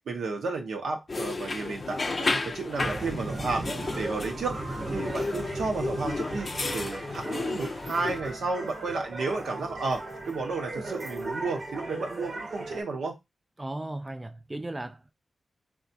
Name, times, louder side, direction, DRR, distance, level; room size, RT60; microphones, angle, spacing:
voice 1, 0.1-3.7 3.9-4.6 4.9-13.2, right 3 dB, 85° right, 0.7 m, -32 dB
sound 1, 1.1-8.2, left 3 dB, 50° left, 0.4 m, -33 dB
sound 2, 2.8-12.8, right 2 dB, 55° right, 0.8 m, -37 dB
voice 2, 13.6-15.1, right 1 dB, 25° right, 0.3 m, -36 dB
3.5 x 2.3 x 2.6 m
cardioid pair, 45°, 0 cm